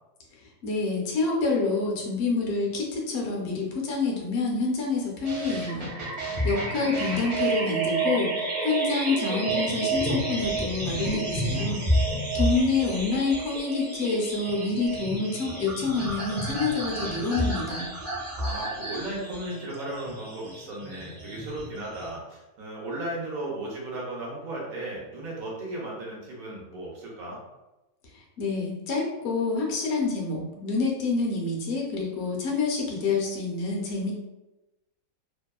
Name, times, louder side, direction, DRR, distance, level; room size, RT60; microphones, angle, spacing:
voice 1, 0.4-5.9 6.4-11.8 12.3-17.9 28.1-34.1, left 3 dB, 60° left, -1 dB, 0.8 m, -27 dB
sound 1, 5.2-22.2, right 2 dB, 30° right, 0.7 m, -30 dB
voice 2, 6.2-7.2 18.3-27.4, right 1 dB, 75° right, -4 dB, 1.1 m, -36 dB
2.8 x 2.2 x 2.3 m, 1.0 s
omnidirectional pair, 1.5 m